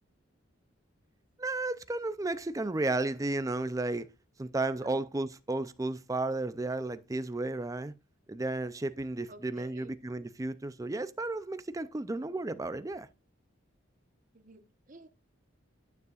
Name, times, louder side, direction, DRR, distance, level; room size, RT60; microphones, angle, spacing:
voice 1, 1.4-4.1 4.4-7.9 8.3-13.1, right 2 dB, 15° right, 0.4 m, -33 dB
voice 2, 9.3-9.9 14.3-15.1, right 2 dB, 40° right, 1.0 m, -52 dB
9.4 x 9.4 x 2.4 m
head